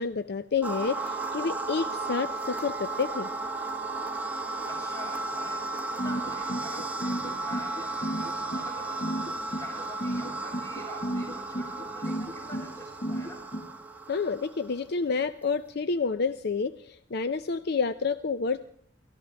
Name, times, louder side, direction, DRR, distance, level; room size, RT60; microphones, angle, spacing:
voice 1, 0.0-3.3 14.1-18.6, left 5 dB, 60° left, 12 dB, 0.6 m, -29 dB
sound 1, 0.6-14.7, right 3 dB, 10° right, 1.0 m, -34 dB
voice 2, 4.7-5.7 5.9-9.2 9.5-13.4, equal, 20° left, -2 dB, 7.9 m, -47 dB
sound 2, 6.0-13.6, right 1 dB, 35° left, 1.7 m, -33 dB
29.0 x 14.0 x 3.4 m, 0.65 s
head